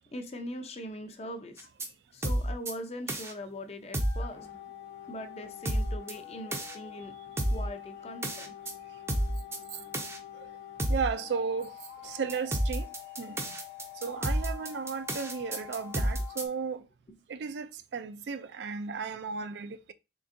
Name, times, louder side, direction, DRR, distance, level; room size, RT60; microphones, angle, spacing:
voice 1, 0.1-1.7 2.1-4.5 5.1-7.1 7.5-8.5 15.9-16.1, equal, 35° left, 0.5 m, -41 dB
sound 1, 1.6-1.9 2.2-2.7 3.1-3.3 3.9-4.2 5.6-6.1 6.5-6.7 7.4-7.7 8.2-8.7 9.1-9.6 9.9-10.2 10.8-11.1 12.3-16.4, right 1 dB, 15° right, 0.5 m, -30 dB
sound 2, 4.0-16.5, left 11 dB, 75° left, 0.9 m, -46 dB
voice 2, 10.9-11.8 12.0-13.5 14.0-16.9 17.3-19.9, right 5 dB, 70° right, 0.4 m, -35 dB
3.8 x 3.4 x 2.5 m
head